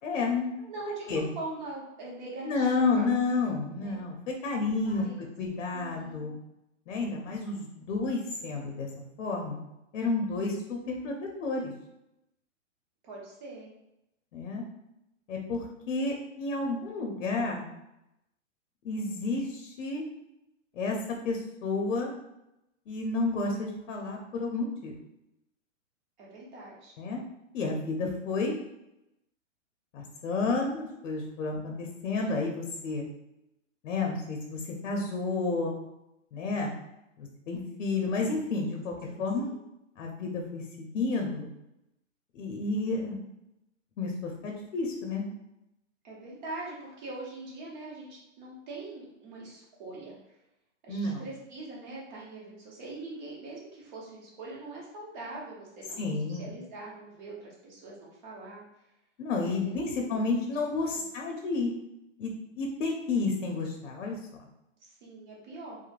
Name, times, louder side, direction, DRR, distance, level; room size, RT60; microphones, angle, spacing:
voice 1, 0.0-0.7 1.1-1.3 2.4-6.3 6.9-8.9 9.2-9.6 9.9-11.7 14.3-14.6 15.3-17.7 18.8-20.0 20.8-21.0 21.2-22.1 22.9-25.0 27.0-27.2 27.5-28.5 29.9-33.1 33.8-35.7 36.3-36.7 37.2-39.5 40.0-41.5 42.3-43.2 44.0-45.3 50.9-51.2 56.0-56.5 59.2-61.7 62.2-62.3 62.6-64.2, left 3 dB, 70° left, 1 dB, 0.6 m, -31 dB
voice 2, 0.7-4.0 4.7-5.2 5.7-6.3 13.0-13.7 26.2-26.9 39.1-39.6 46.0-50.1 50.8-58.6 59.4-59.6 59.8-60.2 60.9-61.0 64.8-65.8, right 2 dB, 35° right, -4 dB, 0.9 m, -43 dB
3.1 x 2.2 x 2.4 m, 0.87 s
hypercardioid pair, 165°, 38 cm